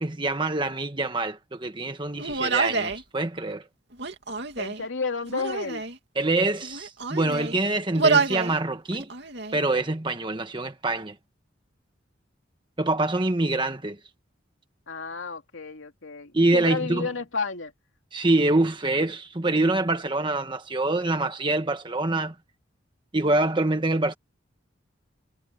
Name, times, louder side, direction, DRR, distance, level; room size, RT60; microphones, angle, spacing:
voice 1, 0.0-3.6 6.1-9.1 9.5-11.1 12.8-14.0 16.3-17.1 18.1-22.3 23.1-24.1, right 2 dB, 25° right, 1.4 m, -25 dB
Human voice, 2.2-3.0 3.9-4.8 5.3-6.0 6.6-7.6 7.9-8.5 8.9-9.6, right 4 dB, 60° right, 2.7 m, -27 dB
voice 2, 4.6-5.8 14.9-17.7, left 4 dB, 90° left, 2.6 m, -31 dB
head